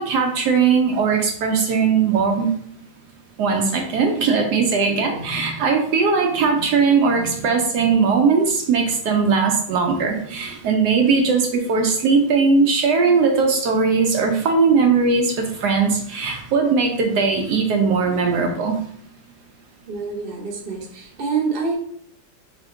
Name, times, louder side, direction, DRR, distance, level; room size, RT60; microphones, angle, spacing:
voice 1, 0.0-2.5 3.4-18.8, right 5 dB, 75° right, 3 dB, 1.1 m, -19 dB
voice 2, 19.9-21.7, right 5 dB, 45° right, 0 dB, 0.8 m, -26 dB
3.6 x 3.5 x 3.7 m, 0.65 s
omnidirectional pair, 1.9 m